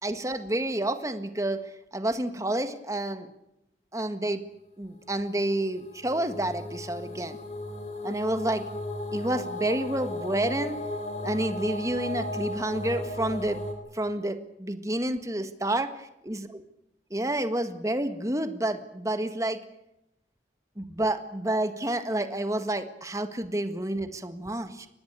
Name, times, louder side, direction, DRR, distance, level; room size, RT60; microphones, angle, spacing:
voice 1, 0.0-1.6 1.9-3.3 3.9-4.4 4.8-7.4 8.0-8.6 9.1-10.8 11.2-13.6 13.9-15.9 16.3-16.4 17.1-19.6 20.8-24.9, right 1 dB, 15° right, 9 dB, 1.7 m, -29 dB
sound 1, 5.2-13.7, left 1 dB, 35° left, 4.2 m, -36 dB
24.0 x 20.0 x 8.3 m, 0.84 s
head